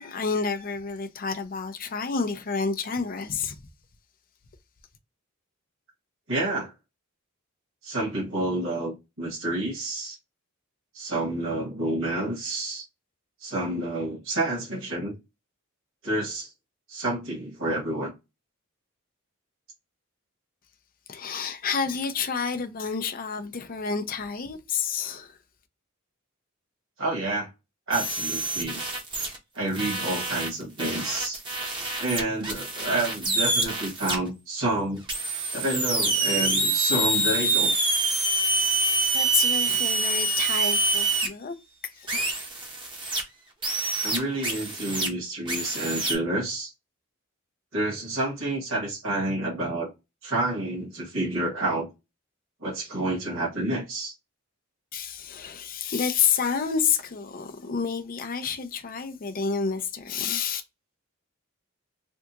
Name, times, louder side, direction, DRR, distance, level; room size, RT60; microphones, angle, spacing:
voice 1, 0.0-3.6 21.1-25.3 39.1-41.6 42.0-42.4 54.9-60.6, left 6 dB, 40° left, 0.5 m, -29 dB
voice 2, 6.3-6.7 7.8-10.2 10.9-12.8 13.4-15.2 16.0-16.5 16.9-18.1 27.0-27.5 27.9-28.8 29.5-31.4 32.0-35.0 35.5-37.7 44.0-46.7 47.7-49.9 50.2-51.9 52.6-54.1, right 2 dB, 65° right, 1.7 m, -29 dB
sound 1, 27.9-29.4 29.7-34.2 35.1-41.3 42.1-43.2 43.6-45.1 45.5-46.1, right 2 dB, 25° right, 0.8 m, -26 dB
3.4 x 2.4 x 2.8 m
head